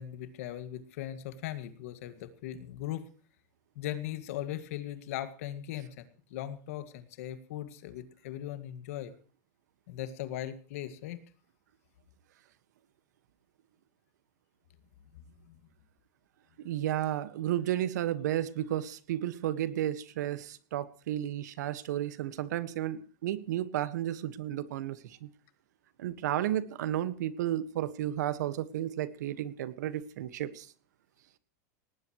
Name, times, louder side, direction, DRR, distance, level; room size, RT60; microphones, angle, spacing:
voice 1, 0.0-3.1 3.8-9.1 9.9-11.2 15.1-15.6, left 12 dB, 55° left, 10 dB, 2.0 m, -39 dB
voice 2, 16.6-25.3 26.0-30.7, right 12 dB, 85° right, 14 dB, 1.5 m, -33 dB
19.0 x 18.5 x 3.1 m, 0.40 s
supercardioid pair, 180°, 9 cm